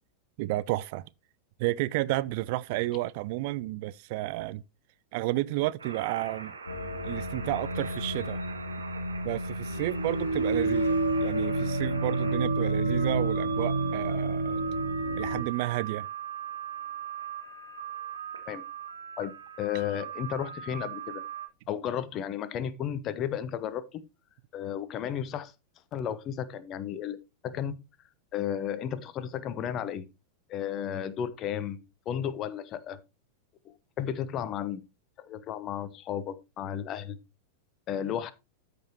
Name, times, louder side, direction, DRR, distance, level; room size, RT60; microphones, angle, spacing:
voice 1, 0.4-1.1 1.6-4.6 5.1-6.5 7.0-8.4 9.2-14.6 15.2-16.1, right 18 dB, 50° right, 0.3 m, -31 dB
sound 1, 5.8-21.5, right 8 dB, 75° right, 1.6 m, -41 dB
sound 2, 6.7-15.4, right 2 dB, 75° left, 1.2 m, -29 dB
voice 2, 19.2-21.2 21.7-24.0 24.5-25.5 25.9-27.2 27.4-27.8 28.3-30.1 30.5-33.0 33.7-34.8 35.2-37.2 37.9-38.3, left 9 dB, 35° left, 0.8 m, -33 dB
13.5 x 5.3 x 3.0 m
figure-of-eight pair, 90°, 0 cm